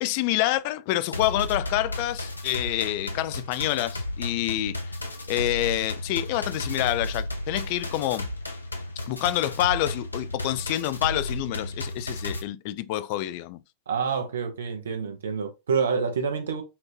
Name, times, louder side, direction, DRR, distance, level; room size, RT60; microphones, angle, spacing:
voice 1, 0.0-4.8 5.3-8.3 9.0-13.6, left 15 dB, 45° left, 0.4 m, -27 dB
sound 1, 1.1-12.4, left 1 dB, 80° left, 0.7 m, -33 dB
voice 2, 13.9-16.6, right 5 dB, 65° right, 1.0 m, -27 dB
5.8 x 2.6 x 2.9 m
figure-of-eight pair, 90°, 0 cm